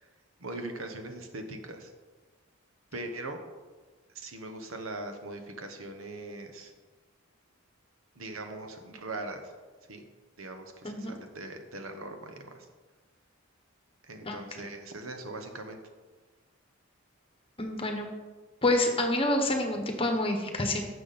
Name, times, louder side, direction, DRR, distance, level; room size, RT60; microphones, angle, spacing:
voice 1, 0.4-1.9 2.9-3.4 4.1-6.7 8.1-9.5 9.9-10.0 10.4-12.7 14.1-15.8, right 2 dB, 80° right, 6 dB, 1.2 m, -40 dB
voice 2, 17.6-18.1 18.6-20.8, left 1 dB, 25° left, 4 dB, 1.3 m, -27 dB
11.5 x 7.3 x 4.3 m, 1.3 s
head